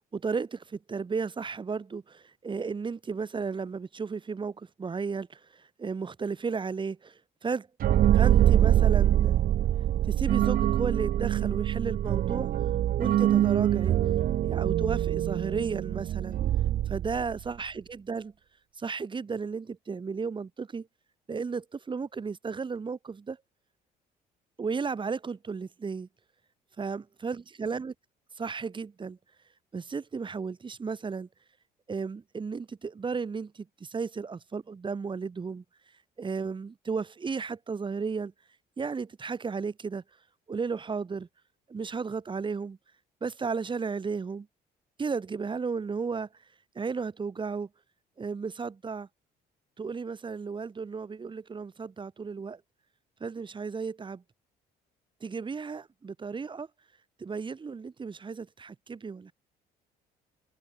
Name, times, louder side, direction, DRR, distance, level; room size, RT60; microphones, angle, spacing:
voice 1, 0.0-7.7 8.1-9.4 10.0-12.5 13.0-14.0 14.4-16.4 16.9-18.3 18.8-20.9 21.3-23.4 24.6-26.1 26.8-27.9 28.4-29.2 29.7-31.3 31.9-35.6 36.2-38.3 38.8-40.0 40.5-41.3 41.7-42.8 43.2-44.5 45.0-46.3 46.7-47.7 48.2-49.1 49.8-52.6 53.2-54.2 55.2-56.7 57.2-59.3, right 5 dB, 30° right, 6.9 m, -34 dB
sound 1, 7.8-17.5, right 12 dB, 55° right, 1.1 m, -24 dB
cardioid pair, 110°, 17 cm